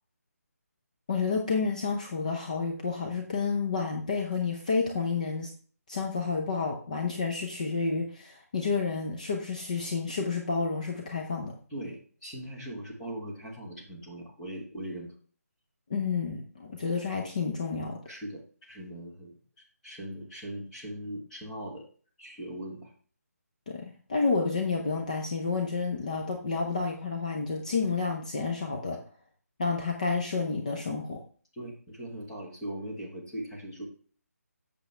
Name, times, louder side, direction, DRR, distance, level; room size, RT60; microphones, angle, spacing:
voice 1, 1.1-5.5 5.9-11.6 15.9-18.0 23.7-29.0 29.6-31.2, left 4 dB, 30° left, 1 dB, 0.8 m, -30 dB
voice 2, 11.7-15.1 18.0-19.3 19.8-21.9 22.2-22.9 31.5-33.9, right 1 dB, 5° left, -6 dB, 1.2 m, -40 dB
8.2 x 6.8 x 3.3 m, 0.43 s
hypercardioid pair, 175°, 9 cm